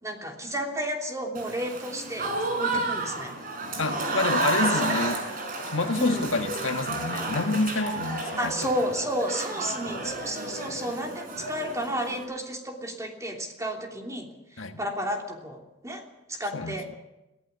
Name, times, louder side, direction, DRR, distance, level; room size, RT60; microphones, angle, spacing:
voice 1, 0.0-3.4 4.6-5.0 6.0-6.3 8.4-14.3 14.5-16.0 16.3-16.8, equal, 15° right, 3.1 m, -32 dB
Applause / Crowd, 1.3-12.2, right 2 dB, 50° right, 4.7 m, -31 dB
voice 2, 3.8-5.2 5.7-8.5 14.6-14.8 16.5-16.8, left 3 dB, 85° left, 1.4 m, -28 dB
21.5 x 15.5 x 8.3 m
head